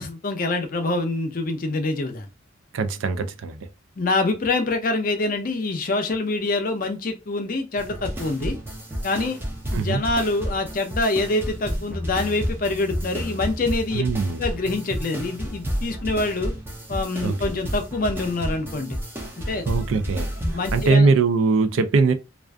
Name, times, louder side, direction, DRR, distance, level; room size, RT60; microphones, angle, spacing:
voice 1, 0.0-2.3 4.0-8.6 9.0-9.4 9.7-14.0 14.4-16.5 16.9-19.0 19.5-19.7 20.5-21.1, left 2 dB, 45° left, 0.5 m, -25 dB
voice 2, 2.7-3.7 9.7-10.0 13.9-14.4 17.2-17.4 19.7-20.3 20.7-22.1, right 4 dB, 75° right, 0.4 m, -21 dB
sound 1, 7.8-20.9, equal, 10° right, 0.4 m, -31 dB
2.4 x 2.3 x 2.2 m
head